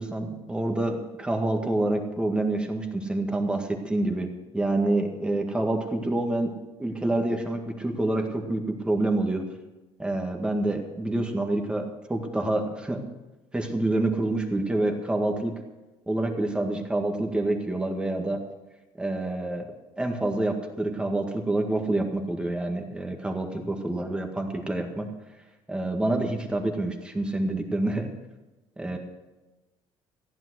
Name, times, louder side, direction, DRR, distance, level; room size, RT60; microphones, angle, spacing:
voice 1, 0.0-4.3 4.5-6.5 6.8-9.4 10.0-13.0 13.5-15.5 16.1-18.4 19.0-19.7 20.0-25.1 25.7-28.1 28.8-29.0, right 2 dB, 10° right, 3 dB, 1.9 m, -27 dB
15.0 x 11.0 x 6.4 m, 1.1 s
cardioid pair, 140°, 11 cm